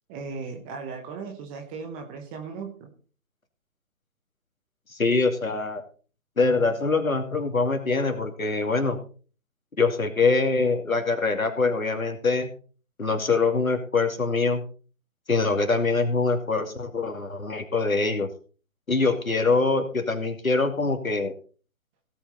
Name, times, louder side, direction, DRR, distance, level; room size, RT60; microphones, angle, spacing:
voice 1, 0.1-2.9, right 5 dB, 10° right, 3 dB, 0.7 m, -37 dB
voice 2, 4.9-5.8 6.4-9.0 9.8-12.5 13.0-14.6 15.3-18.3 18.9-21.3, left 3 dB, 80° left, 6 dB, 2.6 m, -24 dB
16.5 x 8.2 x 4.0 m, 0.39 s
figure-of-eight pair, 140°, 41 cm